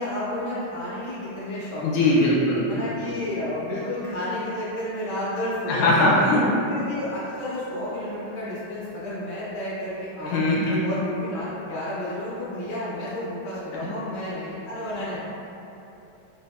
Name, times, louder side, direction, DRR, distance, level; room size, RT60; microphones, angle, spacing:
voice 1, 0.0-2.2 2.7-6.3 6.6-10.4 10.8-15.2, left 1 dB, 50° left, -10 dB, 0.6 m, -31 dB
voice 2, 1.8-2.6 5.7-6.5 10.3-10.8, left 1 dB, 80° left, -6 dB, 1.4 m, -20 dB
3.9 x 2.8 x 2.4 m, 2.9 s
omnidirectional pair, 2.4 m